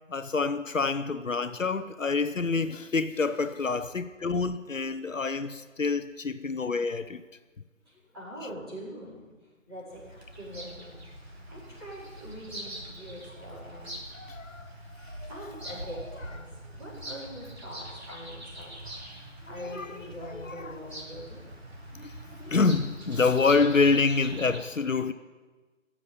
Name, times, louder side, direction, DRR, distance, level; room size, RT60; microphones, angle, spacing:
voice 1, 0.1-7.2 8.4-8.5 14.1-14.7 15.1-15.3 16.1-16.3 19.5-20.8 21.9-25.1, left 4 dB, 70° left, 0.8 m, -27 dB
voice 2, 8.1-9.2 9.7-11.0 11.5-13.9 15.3-16.4 16.7-18.7 19.5-21.5, equal, 20° right, 4.8 m, -43 dB
Bird vocalization bird call bird song, 9.9-24.6, right 1 dB, 50° right, 2.8 m, -43 dB
16.5 x 7.4 x 9.5 m
figure-of-eight pair, 175°, 40 cm